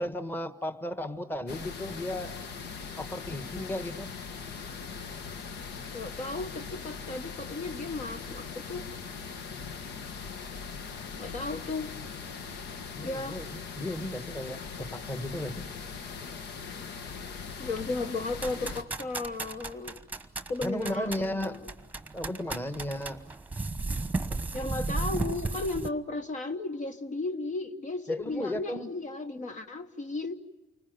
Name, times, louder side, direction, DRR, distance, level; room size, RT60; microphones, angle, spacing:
voice 1, 0.0-2.3 3.0-4.1 12.9-15.7 20.6-21.6 22.1-23.2 28.1-28.9, left 1 dB, 10° left, 9 dB, 1.4 m, -35 dB
sound 1, 1.5-18.8, left 5 dB, 80° left, 1.4 m, -40 dB
voice 2, 5.9-8.9 11.2-11.9 13.0-13.4 17.6-20.0 20.5-21.6 24.5-30.4, left 3 dB, 50° left, 8 dB, 1.2 m, -35 dB
sound 2, 18.4-25.9, right 3 dB, 10° right, 1.2 m, -34 dB
29.0 x 20.5 x 9.2 m, 1.1 s
cardioid pair, 110°, 17 cm